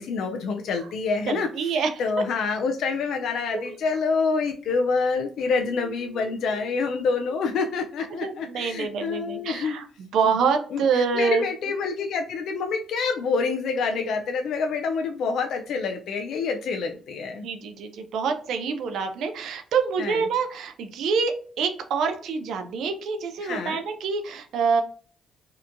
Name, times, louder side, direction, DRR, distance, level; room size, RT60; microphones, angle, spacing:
voice 1, 0.0-9.7 10.2-10.3 10.7-17.5 20.0-20.2 23.4-23.8, left 4 dB, 75° left, 3 dB, 0.3 m, -27 dB
voice 2, 1.3-2.2 3.5-3.8 6.2-6.5 7.3-7.4 8.2-11.4 17.4-24.8, right 5 dB, 75° right, 6 dB, 0.4 m, -26 dB
2.8 x 2.2 x 2.4 m, 0.43 s
cardioid pair, 90°, 0 cm